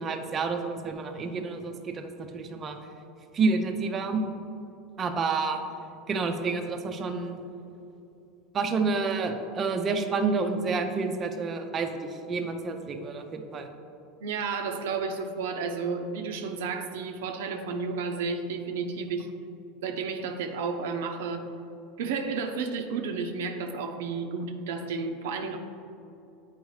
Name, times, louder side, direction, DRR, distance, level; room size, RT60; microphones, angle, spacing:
voice 1, 0.0-2.8 3.3-4.2 5.0-5.6 6.1-7.4 8.5-13.7, right 4 dB, 30° right, 5 dB, 0.5 m, -29 dB
voice 2, 14.2-19.3 19.8-21.5 22.0-25.6, right 5 dB, 85° right, 5 dB, 0.6 m, -32 dB
7.9 x 4.6 x 3.2 m, 2.7 s
supercardioid pair, 115°, 0 cm